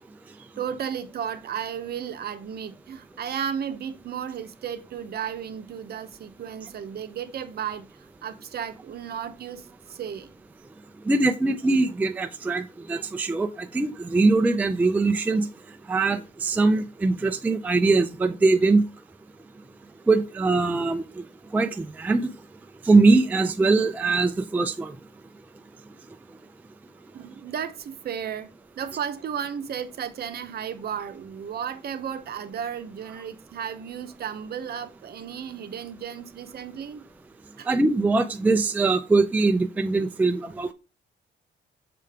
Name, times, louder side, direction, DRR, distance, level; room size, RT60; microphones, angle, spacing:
voice 1, 0.6-7.9 8.2-10.3 27.1-28.5 28.8-37.0 37.6-37.7, right 8 dB, 50° right, 0.7 m, -34 dB
voice 2, 11.1-15.5 15.9-18.8 20.1-21.0 21.5-22.3 22.9-24.9 37.7-40.7, right 3 dB, 10° right, 0.3 m, -22 dB
6.7 x 4.9 x 3.4 m
wide cardioid pair, 160°, 20 cm